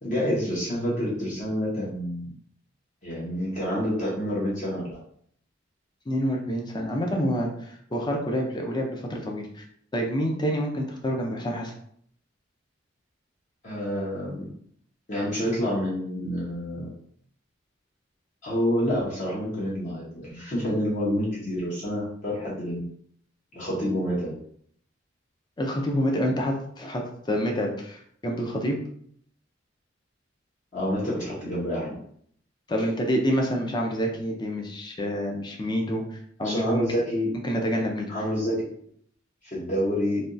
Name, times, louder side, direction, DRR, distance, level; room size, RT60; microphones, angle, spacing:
voice 1, 0.0-2.3 3.0-5.0 13.6-14.5 15.1-16.9 18.4-22.8 23.5-24.3 30.7-31.9 36.4-37.3 38.1-38.7 39.5-40.2, equal, 40° left, -7 dB, 0.9 m, -28 dB
voice 2, 6.1-9.6 9.9-11.7 25.6-28.8 32.7-36.0 36.4-36.9 37.4-38.1, equal, 25° left, 1 dB, 0.5 m, -27 dB
3.3 x 2.3 x 2.6 m, 0.64 s
head